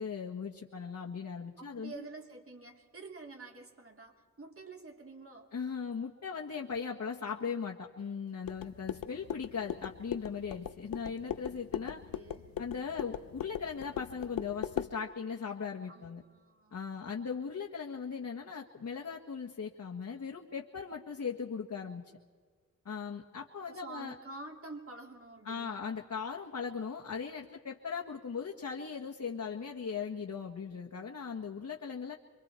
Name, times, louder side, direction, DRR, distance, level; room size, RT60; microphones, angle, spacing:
voice 1, 0.0-2.0 5.5-12.0 12.6-16.2 16.7-22.1 22.8-24.1 25.4-32.1, left 6 dB, 55° left, 0 dB, 1.7 m, -39 dB
voice 2, 1.6-5.5 8.9-9.3 11.8-12.5 15.9-17.3 23.7-25.8, right 3 dB, 40° right, 2 dB, 3.5 m, -49 dB
sound 1, 8.5-14.9, left 10 dB, 80° left, 0.8 m, -39 dB
26.0 x 23.0 x 4.5 m, 1.5 s
cardioid pair, 55°, 33 cm